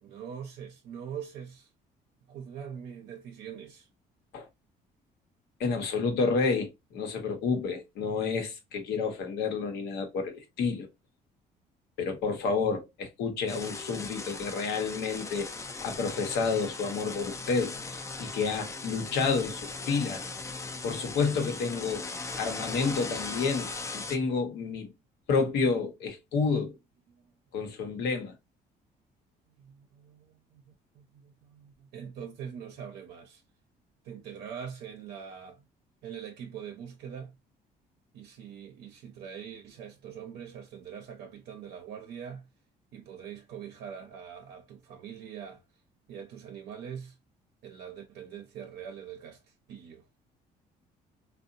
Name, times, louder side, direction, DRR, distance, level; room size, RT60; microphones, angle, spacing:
voice 1, 0.0-1.7 2.3-3.9 27.1-27.3 29.6-33.4 34.0-35.7 36.0-37.3 38.1-42.4 42.9-45.6 46.1-47.2 47.6-50.0, right 8 dB, 80° right, 0.5 m, -43 dB
voice 2, 5.6-10.9 12.0-15.5 15.8-20.2 20.8-22.1 22.4-24.9 25.3-26.8 27.5-28.3, left 4 dB, 80° left, 0.8 m, -30 dB
sound 1, 13.5-24.2, left 3 dB, 15° left, 0.3 m, -39 dB
2.7 x 2.0 x 2.5 m
cardioid pair, 110°, 17 cm